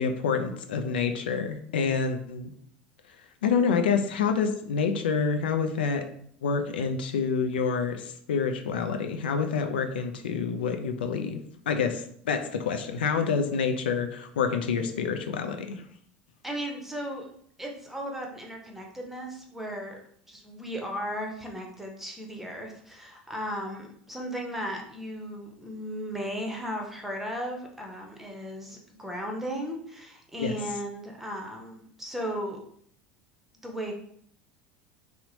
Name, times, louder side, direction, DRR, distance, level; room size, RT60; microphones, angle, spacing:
voice 1, 0.0-2.5 3.4-6.0 6.4-11.4 11.7-15.8 30.4-30.6, left 6 dB, 80° left, 6 dB, 0.3 m, -27 dB
voice 2, 16.4-17.3 17.6-20.0 20.3-32.6 33.6-33.9, equal, 5° right, 1 dB, 0.7 m, -36 dB
2.8 x 2.0 x 2.8 m, 0.64 s
hypercardioid pair, 80°, 5 cm